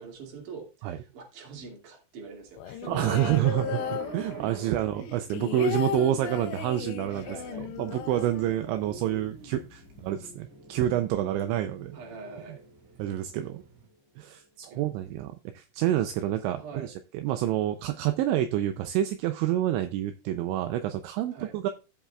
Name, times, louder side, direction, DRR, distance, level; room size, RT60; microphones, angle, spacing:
voice 1, 0.0-3.1 4.5-4.8 6.2-6.4 7.1-7.7 11.9-12.6 14.7-14.9 16.1-16.2 16.5-16.9 21.3-21.5, right 4 dB, 50° right, 3.1 m, -44 dB
sound 1, 2.5-4.7 5.0-9.0 9.3-9.4 9.6-10.1, left 9 dB, 85° left, 2.5 m, -35 dB
sound 2, 2.9-13.9, right 6 dB, 65° right, 2.4 m, -46 dB
voice 2, 2.9-7.3 7.6-12.0 13.0-13.6 14.2-21.7, right 12 dB, 85° right, 2.7 m, -28 dB
sound 3, 7.1-15.4, left 2 dB, 10° left, 2.4 m, -55 dB
16.0 x 5.6 x 2.4 m
omnidirectional pair, 5.8 m